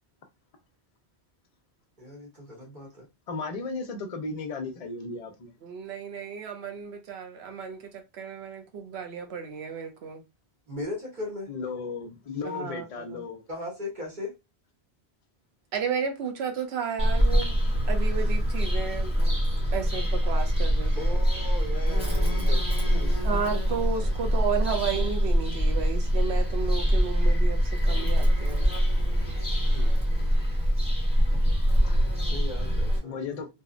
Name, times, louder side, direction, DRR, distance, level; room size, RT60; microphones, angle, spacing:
voice 1, 2.0-3.1 10.7-11.5 13.5-14.3 20.9-23.2 24.0-24.3 29.6-30.5 32.3-33.2, left 1 dB, 50° right, 1.0 m, -38 dB
voice 2, 3.3-5.5 11.5-13.4 17.3-17.5 31.8-32.1 33.0-33.5, left 4 dB, 50° left, 0.5 m, -35 dB
voice 3, 5.6-10.2 12.4-12.8 13.1-13.2 15.7-17.5 17.9-19.2 19.7-21.2 23.2-28.7, right 6 dB, 80° right, 0.9 m, -33 dB
Bird vocalization bird call bird song, 17.0-33.0, equal, 5° right, 0.8 m, -24 dB
2.7 x 2.0 x 2.4 m
omnidirectional pair, 1.1 m